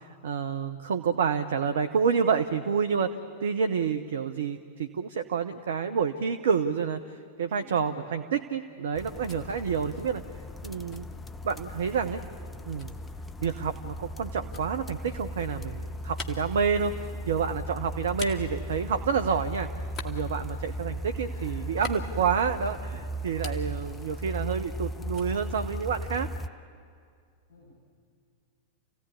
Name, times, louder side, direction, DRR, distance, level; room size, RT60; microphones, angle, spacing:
voice 1, 0.0-10.2 10.6-11.1 11.4-12.2 12.7-12.9 13.4-19.7 20.0-26.3, right 6 dB, 60° right, 9 dB, 0.8 m, -29 dB
voice 2, 7.5-8.1 17.8-18.4 20.5-20.9 21.2-21.9 27.5-27.7, left 2 dB, 55° left, -3 dB, 6.7 m, -52 dB
sound 1, 8.9-11.9 12.8-19.4 19.8-22.9 23.2-24.9 25.1-26.4, left 3 dB, 30° left, 2.2 m, -46 dB
sound 2, 8.9-26.5, equal, 15° left, 0.8 m, -37 dB
29.0 x 16.5 x 9.7 m, 2.3 s
figure-of-eight pair, 90°, 0 cm